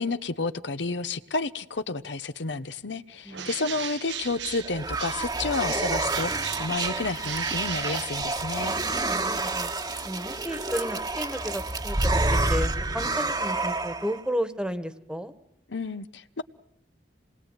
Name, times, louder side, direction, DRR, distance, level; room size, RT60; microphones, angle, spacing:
voice 1, 0.0-6.3 6.6-8.7 15.7-16.4, left 3 dB, 85° left, 12 dB, 1.0 m, -31 dB
Bird, 3.3-5.4 5.7-8.7, right 10 dB, 80° right, 1.3 m, -38 dB
sound 1, 4.2-14.2, right 2 dB, 25° right, 1.3 m, -28 dB
voice 2, 9.0-9.7 10.0-15.3, equal, 5° right, 11 dB, 1.5 m, -33 dB
27.0 x 21.0 x 9.1 m, 0.78 s
head